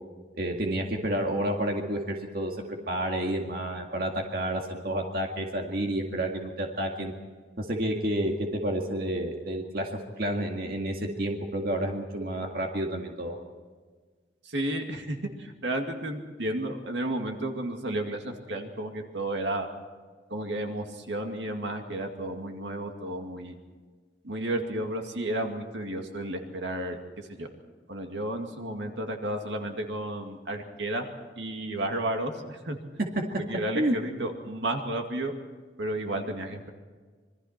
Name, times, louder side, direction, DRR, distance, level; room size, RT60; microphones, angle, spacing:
voice 1, 0.4-2.6 2.9-7.1 7.6-9.9 10.2-13.4 33.7-34.0, right 1 dB, 50° right, 2 dB, 2.0 m, -30 dB
voice 2, 14.4-19.7 20.3-23.6 24.2-27.5 27.9-31.1 31.4-32.8 33.4-35.4 35.8-36.7, right 1 dB, 70° right, 4 dB, 2.3 m, -32 dB
26.5 x 22.5 x 4.4 m, 1.5 s
head